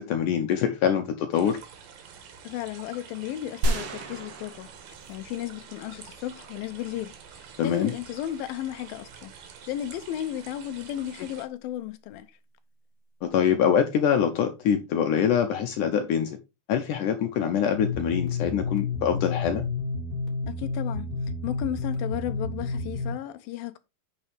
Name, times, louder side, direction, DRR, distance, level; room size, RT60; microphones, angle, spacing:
voice 1, 0.0-1.6 7.6-7.9 13.2-16.4 16.7-19.6, left 8 dB, 70° left, 2.2 m, -24 dB
sound 1, 1.3-11.5, right 7 dB, 85° right, 3.4 m, -48 dB
voice 2, 2.4-4.7 5.1-9.3 9.7-12.3 20.5-21.1 21.4-23.8, left 12 dB, 85° left, 2.5 m, -34 dB
sound 2, 3.6-5.6 5.9-6.0, right 1 dB, 55° right, 2.3 m, -30 dB
sound 3, 17.8-23.1, left 4 dB, 35° left, 1.4 m, -30 dB
9.6 x 5.6 x 3.5 m
omnidirectional pair, 4.1 m